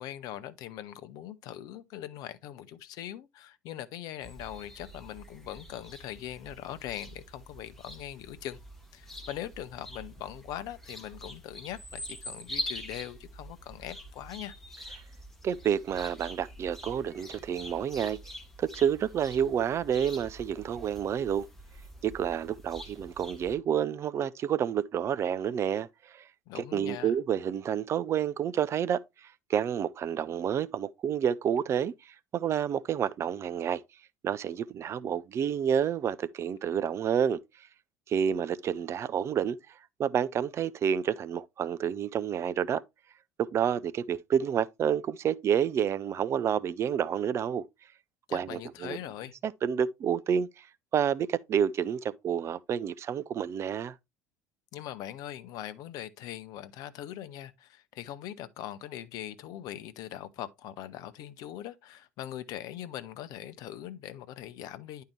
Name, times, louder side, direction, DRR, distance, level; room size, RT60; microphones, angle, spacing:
voice 1, 0.0-8.6 8.9-14.6 26.5-27.2 48.3-49.3 54.7-65.0, left 12 dB, 50° left, 0.8 m, -41 dB
sound 1, 4.2-23.5, equal, 5° left, 2.0 m, -45 dB
voice 2, 15.4-18.2 18.6-21.5 22.0-26.2 26.6-33.8 34.2-37.4 38.1-39.6 40.0-42.8 43.4-47.6 48.3-49.0 49.4-50.7 50.9-53.9, right 8 dB, 35° right, 0.4 m, -29 dB
10.5 x 4.6 x 3.1 m
figure-of-eight pair, 65°, 8 cm